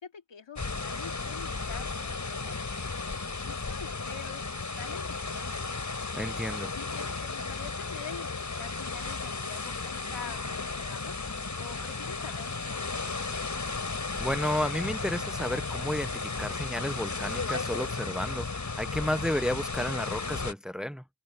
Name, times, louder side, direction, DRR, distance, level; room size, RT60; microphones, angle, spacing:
voice 1, 0.0-2.6 3.4-5.9 6.7-11.2 11.6-13.5, left 7 dB, 70° left, 2.9 m, -46 dB
sound 1, 0.6-20.5, left 4 dB, 40° left, 4.3 m, -34 dB
voice 2, 6.1-6.8 14.2-21.0, left 1 dB, ahead, 1.2 m, -32 dB
cardioid pair, 55°, 45 cm